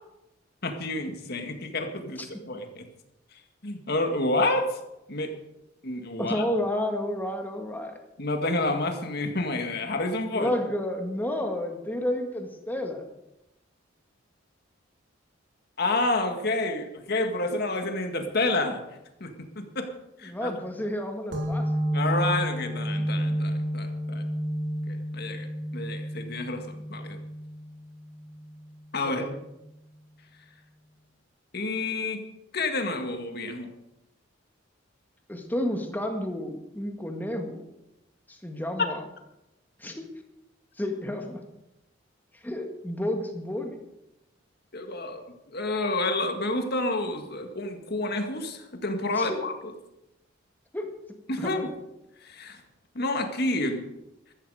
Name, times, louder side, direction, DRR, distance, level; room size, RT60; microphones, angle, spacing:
voice 1, 0.6-2.8 3.6-4.8 5.1-5.3 5.8-6.4 8.2-10.5 15.8-18.8 19.2-19.9 20.2-20.5 21.9-24.2 24.9-27.2 28.9-29.2 31.5-32.2 32.5-33.7 38.8-38.9 44.7-45.2 45.5-49.5 51.3-51.7 52.2-52.6 53.0-53.9, left 2 dB, 50° left, 5 dB, 2.0 m, -29 dB
voice 2, 6.2-8.0 10.3-13.1 20.2-21.8 29.0-29.4 35.3-37.7 38.3-39.0 39.8-40.0 40.8-41.4 42.3-43.8 49.2-49.4 50.7-51.7, left 1 dB, 10° left, 3 dB, 1.8 m, -31 dB
sound 1, 21.3-28.6, equal, 65° right, 3.3 m, -30 dB
14.5 x 13.5 x 5.0 m, 0.90 s
head